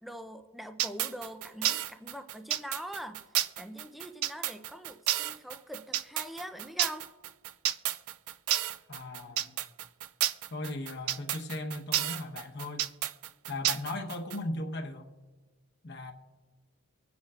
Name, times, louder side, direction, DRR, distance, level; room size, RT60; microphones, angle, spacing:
voice 1, 0.0-3.2 3.6-7.1, equal, ahead, 7 dB, 0.5 m, -43 dB
sound 1, 0.8-14.4, right 12 dB, 75° right, 0.4 m, -31 dB
voice 2, 8.9-9.6 10.5-12.9 13.5-15.1 15.8-16.1, left 2 dB, 50° left, 2 dB, 1.1 m, -37 dB
25.0 x 9.5 x 2.5 m, 1.3 s
head